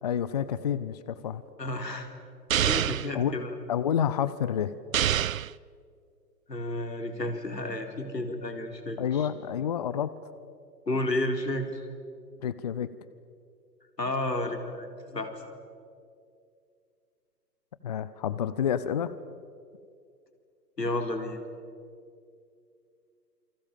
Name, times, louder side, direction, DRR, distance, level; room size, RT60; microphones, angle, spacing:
voice 1, 0.0-1.4 3.1-3.4 3.7-4.7 9.0-10.2 12.4-12.9 17.8-19.1, left 9 dB, 25° left, 15 dB, 0.6 m, -29 dB
voice 2, 1.6-2.1 2.6-3.6 6.5-9.3 10.9-11.8 14.0-15.3 20.8-21.4, left 1 dB, 85° left, 5 dB, 4.1 m, -31 dB
sound 1, 2.5-3.1 4.9-5.5, right 10 dB, 55° right, 0.6 m, -25 dB
28.5 x 25.5 x 7.3 m, 2.4 s
figure-of-eight pair, 125°, 48 cm